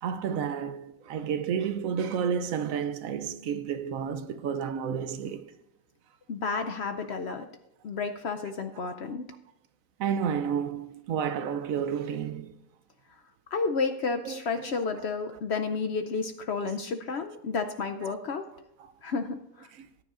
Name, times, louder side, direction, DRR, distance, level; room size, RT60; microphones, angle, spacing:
voice 1, 0.0-5.5 8.9-9.0 10.0-12.6 14.2-15.1 15.7-15.8 16.6-16.7 18.0-18.1 18.8-18.9 19.8-19.9, right 7 dB, 70° right, 1.0 m, -31 dB
voice 2, 6.3-7.5 7.8-9.3 13.5-18.4 19.0-19.7, left 4 dB, 60° left, 0.7 m, -31 dB
18.5 x 9.7 x 2.5 m
omnidirectional pair, 1.6 m